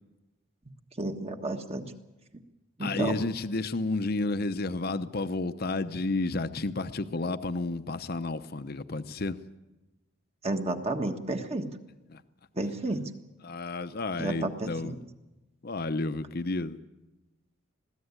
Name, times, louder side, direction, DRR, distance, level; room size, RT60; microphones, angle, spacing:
voice 1, 1.0-1.9 2.8-3.2 10.4-11.7 12.6-13.1 14.2-15.0, right 2 dB, 30° right, 6 dB, 1.5 m, -31 dB
voice 2, 2.8-9.4 12.1-12.2 13.4-14.9 15.6-16.8, left 3 dB, 45° left, 11 dB, 0.8 m, -31 dB
21.0 x 15.5 x 9.7 m, 1.1 s
head